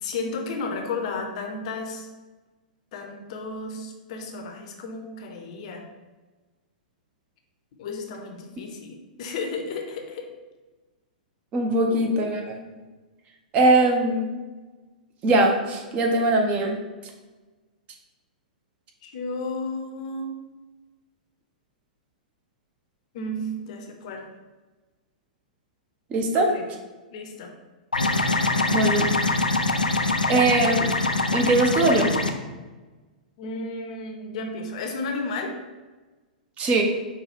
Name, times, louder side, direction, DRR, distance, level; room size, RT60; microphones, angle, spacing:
voice 1, 0.0-2.1 2.9-5.8 7.8-10.3 11.9-12.2 19.0-20.3 23.1-24.2 26.3-26.7 27.1-27.5 33.4-35.5, left 3 dB, 50° left, 3 dB, 0.6 m, -33 dB
voice 2, 11.5-12.6 13.5-14.4 15.2-16.8 26.1-26.5 28.7-29.1 30.3-30.9 31.3-32.1 36.6-36.8, right 2 dB, 30° right, 2 dB, 0.6 m, -21 dB
sound 1, 27.9-32.3, left 2 dB, 90° left, 0.4 m, -23 dB
5.3 x 2.2 x 3.3 m, 1.2 s
figure-of-eight pair, 105°, 4 cm